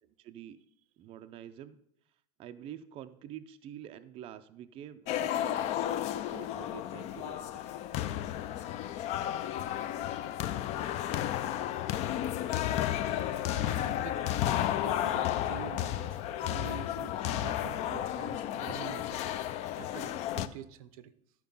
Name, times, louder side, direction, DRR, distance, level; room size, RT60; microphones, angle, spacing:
voice 1, 0.0-0.6 1.0-1.8 2.4-5.9 6.3-7.6 17.8-18.0, right 10 dB, 30° right, 9 dB, 0.4 m, -47 dB
sound 1, 5.1-20.5, left 12 dB, 40° left, 0.4 m, -33 dB
voice 2, 13.5-14.3 14.7-19.2 19.7-21.1, right 10 dB, 85° right, 14 dB, 0.6 m, -46 dB
11.5 x 4.6 x 5.3 m, 0.74 s
supercardioid pair, 150°, 18 cm